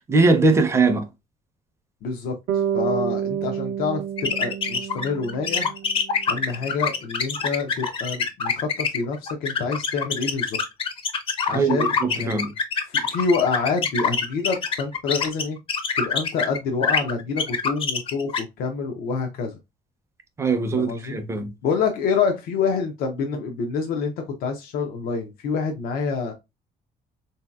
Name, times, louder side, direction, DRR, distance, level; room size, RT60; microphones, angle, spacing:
voice 1, 0.1-1.0 11.5-12.5 20.4-21.5, right 3 dB, 20° right, 0.5 m, -21 dB
voice 2, 2.0-5.7 6.3-10.6 11.5-12.5 12.8-15.6 16.0-19.6 20.7-21.2 21.6-26.3, left 5 dB, 80° left, 0.6 m, -27 dB
Bass guitar, 2.5-6.6, right 9 dB, 80° right, 0.5 m, -29 dB
sound 1, 4.2-16.6 16.8-18.4, left 5 dB, 35° left, 0.5 m, -25 dB
3.8 x 2.7 x 2.2 m
cardioid pair, 170°, 15 cm